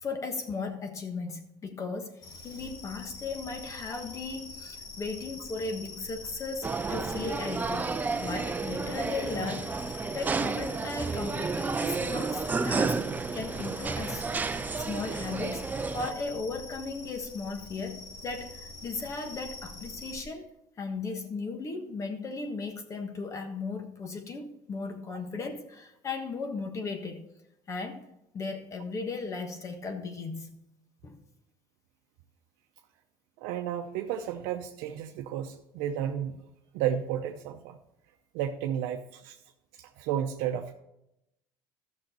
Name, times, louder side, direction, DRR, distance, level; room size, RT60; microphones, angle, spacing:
voice 1, 0.0-7.9 8.2-9.7 10.1-20.5 20.8-27.2 27.7-28.1 28.3-30.5 31.0-31.2, left 4 dB, 35° left, 6 dB, 1.4 m, -36 dB
sound 1, 2.2-20.2, left 3 dB, 60° left, 1.9 m, -44 dB
sound 2, 6.6-16.1, right 4 dB, 20° right, 0.5 m, -31 dB
voice 2, 33.4-36.4 36.7-37.8 38.3-39.4 39.8-40.8, right 9 dB, 85° right, 3 dB, 0.7 m, -32 dB
13.0 x 6.4 x 4.3 m, 0.85 s
cardioid pair, 110°, 9 cm